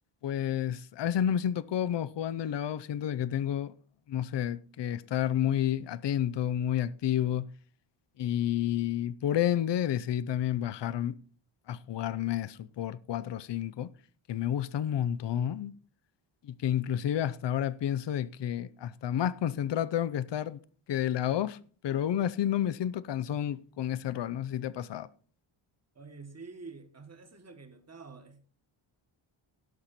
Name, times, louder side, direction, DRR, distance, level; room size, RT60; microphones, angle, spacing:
voice 1, 0.2-3.7 4.1-7.5 8.2-11.2 11.7-13.9 14.3-15.7 16.4-20.6 20.9-21.6 21.8-25.1, left 10 dB, 60° left, 0.6 m, -30 dB
voice 2, 25.9-28.4, right 4 dB, 30° right, 1.5 m, -48 dB
17.5 x 6.7 x 4.3 m
wide cardioid pair, 165°, 50 cm